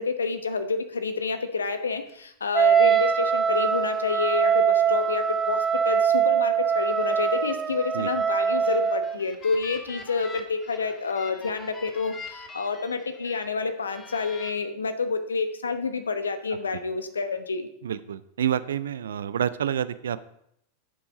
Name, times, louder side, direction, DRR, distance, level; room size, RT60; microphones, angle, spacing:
voice 1, 0.0-17.7, left 4 dB, 70° left, 9 dB, 1.0 m, -29 dB
Wind instrument woodwind instrument, 2.5-9.2, right 7 dB, 20° right, 0.4 m, -23 dB
sound 1, 8.4-13.5 13.9-14.5, left 3 dB, 20° left, 1.8 m, -43 dB
voice 2, 17.8-20.2, right 9 dB, 65° right, 16 dB, 0.6 m, -28 dB
10.0 x 7.1 x 5.0 m, 0.74 s
figure-of-eight pair, 90°, 0 cm